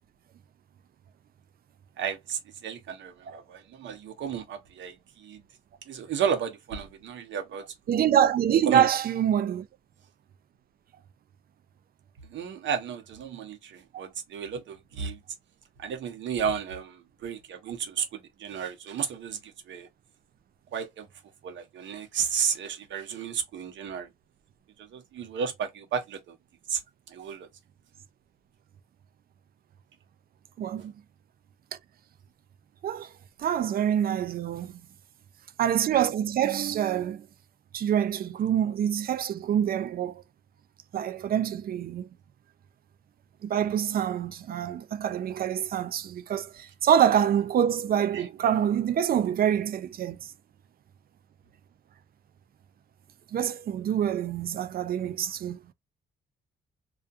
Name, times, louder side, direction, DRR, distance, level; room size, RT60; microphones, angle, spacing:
voice 1, 2.0-5.4 5.9-7.6 8.7-9.0 12.3-15.2 15.8-19.9 20.7-21.1 21.4-24.1 24.8-26.4 26.7-26.8 27.1-27.5 48.1-48.3, right 7 dB, 70° right, 0.8 m, -33 dB
voice 2, 7.9-9.7 27.2-27.3 30.6-30.9 32.8-33.1 33.4-34.7 35.6-37.2 37.7-40.2 40.9-42.0 43.4-50.2 53.3-55.6, right 9 dB, 50° right, 0.4 m, -26 dB
2.3 x 2.2 x 2.6 m
cardioid pair, 90°, 20 cm